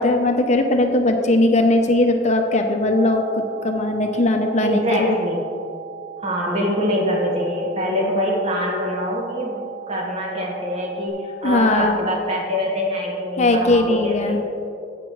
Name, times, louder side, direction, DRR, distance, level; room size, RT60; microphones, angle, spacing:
voice 1, 0.0-5.2 11.4-12.0 13.4-14.4, left 2 dB, 40° left, 5 dB, 0.7 m, -19 dB
sound 1, 2.9-11.1, right 10 dB, 85° right, 1.7 m, -38 dB
voice 2, 4.6-5.4 6.2-14.4, equal, 35° right, -2 dB, 1.6 m, -24 dB
10.5 x 8.9 x 3.1 m, 2.6 s
head